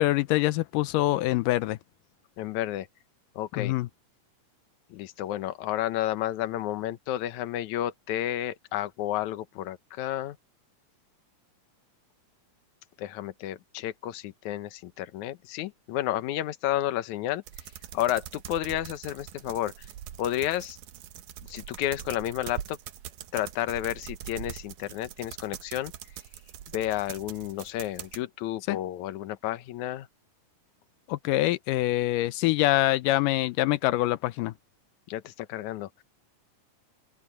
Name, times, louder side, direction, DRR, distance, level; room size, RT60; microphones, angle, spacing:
voice 1, 0.0-1.8 3.6-3.9 28.7-28.8 31.1-34.5, left 16 dB, 85° left, 2.3 m, -25 dB
voice 2, 2.4-2.9 3.4-3.7 4.9-10.4 13.0-17.4 17.9-19.9 20.2-20.8 21.5-22.8 23.3-25.9 26.7-30.1 35.1-36.0, left 13 dB, 70° left, 2.3 m, -31 dB
sound 1, 17.5-28.2, right 11 dB, 75° right, 2.5 m, -43 dB
open air
omnidirectional pair, 3.7 m